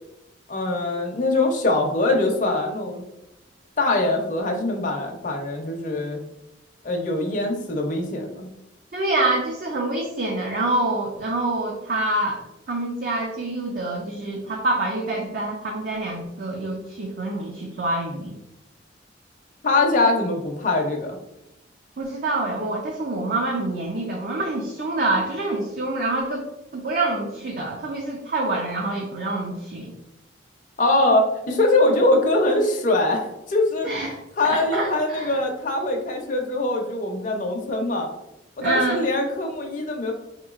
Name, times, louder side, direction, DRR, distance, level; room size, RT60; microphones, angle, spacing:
voice 1, 0.5-3.0 3.8-6.2 6.8-8.5 19.6-21.2 30.8-33.9 34.4-38.1 38.6-40.1, left 2 dB, 40° left, 2 dB, 0.5 m, -22 dB
voice 2, 8.9-12.4 12.7-18.3 22.0-26.5 26.7-29.9 33.9-35.4 38.6-39.0, right 2 dB, 50° right, 0 dB, 0.5 m, -26 dB
4.3 x 2.9 x 2.4 m, 0.87 s
head